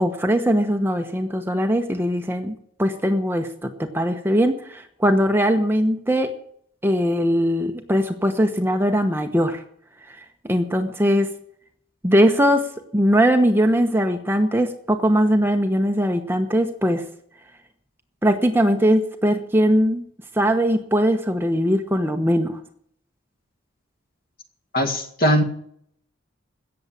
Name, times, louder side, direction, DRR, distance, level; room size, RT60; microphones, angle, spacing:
voice 1, 0.0-2.5 2.8-6.3 6.8-9.6 10.1-11.3 12.0-12.7 12.9-17.0 18.2-20.0 20.3-22.6, equal, 10° right, 5 dB, 1.0 m, -20 dB
voice 2, 24.7-25.4, equal, 45° left, 5 dB, 2.1 m, -20 dB
16.5 x 7.3 x 8.7 m, 0.67 s
head